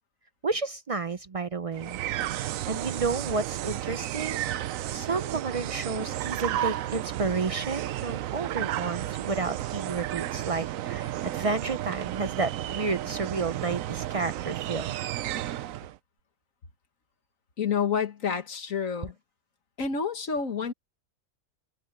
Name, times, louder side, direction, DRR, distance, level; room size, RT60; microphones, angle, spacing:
voice 1, 0.4-2.0 2.3-4.4 4.9-14.9, right 4 dB, 50° right, 0.4 m, -31 dB
sound 1, 1.7-16.0, right 13 dB, 85° right, 1.0 m, -33 dB
voice 2, 17.6-19.2 19.8-20.7, left 6 dB, 90° left, 2.0 m, -29 dB
omnidirectional pair, 1.4 m